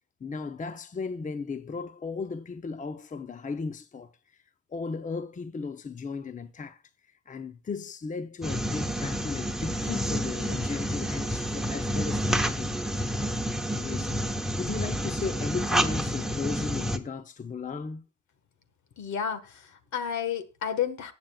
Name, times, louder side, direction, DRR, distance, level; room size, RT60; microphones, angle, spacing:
voice 1, 0.2-4.1 4.7-6.8 7.3-12.8 13.7-18.0, left 4 dB, 25° left, 0.7 m, -36 dB
sound 1, 8.4-17.0, equal, ahead, 1.0 m, -29 dB
voice 2, 19.0-21.1, left 8 dB, 70° left, 1.5 m, -31 dB
19.0 x 7.6 x 2.3 m
cardioid pair, 90°, 30 cm